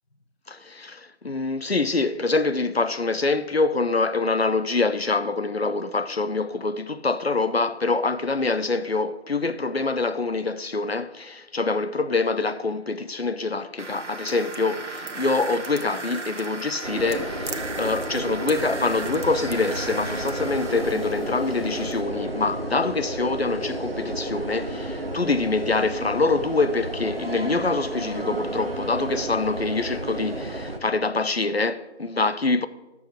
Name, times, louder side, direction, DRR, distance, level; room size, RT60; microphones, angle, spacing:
voice 1, 0.5-32.7, left 3 dB, 60° left, 0.5 m, -25 dB
sound 1, 13.8-22.0, right 3 dB, 85° right, 1.0 m, -36 dB
sound 2, 16.8-30.8, right 1 dB, 55° right, 0.9 m, -32 dB
10.0 x 7.0 x 4.7 m
figure-of-eight pair, 175°, 35 cm